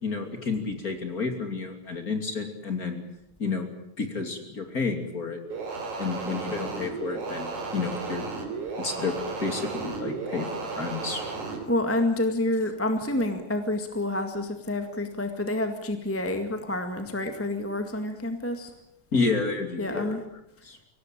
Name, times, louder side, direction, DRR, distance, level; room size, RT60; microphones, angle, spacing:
voice 1, 0.0-3.0 3.4-3.7 4.0-5.4 6.0-8.3 8.8-11.3 19.1-20.2 20.6-20.8, left 4 dB, 30° left, 5 dB, 3.1 m, -30 dB
sound 1, 5.5-11.6, right 4 dB, 75° right, 4.9 m, -34 dB
voice 2, 11.7-18.7 19.8-20.2, left 1 dB, 5° left, 6 dB, 1.3 m, -28 dB
24.0 x 18.0 x 9.0 m, 0.81 s
omnidirectional pair, 3.4 m